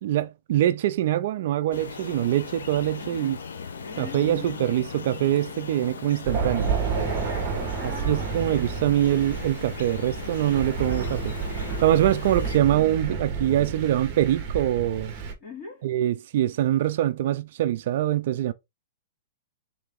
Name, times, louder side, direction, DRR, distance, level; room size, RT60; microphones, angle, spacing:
voice 1, 0.0-3.4 4.0-6.7 7.8-11.3 11.8-15.1 15.8-18.5, right 12 dB, 55° right, 0.3 m, -24 dB
sound 1, 1.7-12.6, left 5 dB, 85° left, 0.8 m, -38 dB
voice 2, 3.0-3.4 3.8-4.7 6.9-8.7 15.4-15.9, left 4 dB, 25° left, 2.3 m, -41 dB
Thunder, 6.2-15.3, right 5 dB, 30° right, 1.3 m, -30 dB
3.8 x 2.9 x 3.6 m
hypercardioid pair, 145°, 0 cm